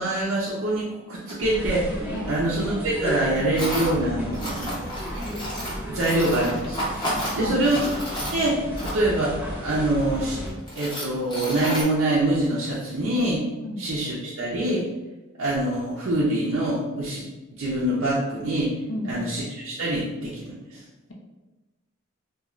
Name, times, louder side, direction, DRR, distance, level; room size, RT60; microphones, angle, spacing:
voice 1, 0.0-2.0 2.3-4.9 5.9-7.8 8.3-10.4 10.8-13.4 13.8-14.8 15.4-17.2 17.6-18.7 19.0-20.8, right 1 dB, 70° right, -6 dB, 0.5 m, -25 dB
Tools, 1.3-1.4 3.5-3.9 4.3-9.2 9.9-10.0 10.5-11.8, equal, 20° left, 0.8 m, -31 dB
sound 1, 1.4-10.5, equal, 10° right, 0.4 m, -34 dB
voice 2, 7.3-7.6 13.6-13.9 18.9-19.3, left 1 dB, 65° left, -1 dB, 0.5 m, -32 dB
3.0 x 2.3 x 2.4 m, 1.1 s
head